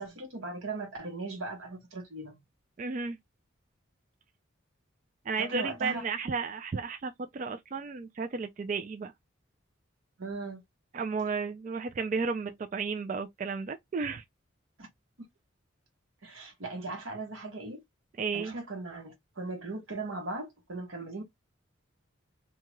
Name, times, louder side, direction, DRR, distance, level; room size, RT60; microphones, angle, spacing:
voice 1, 0.0-2.4 5.4-6.0 10.2-10.6 14.8-14.9 15.2-15.3 16.2-17.8 18.3-21.2, right 3 dB, 85° right, 1.1 m, -38 dB
voice 2, 2.8-3.2 5.3-9.1 10.9-14.2 18.2-18.5, right 4 dB, 40° right, 0.3 m, -33 dB
2.8 x 2.3 x 3.0 m
head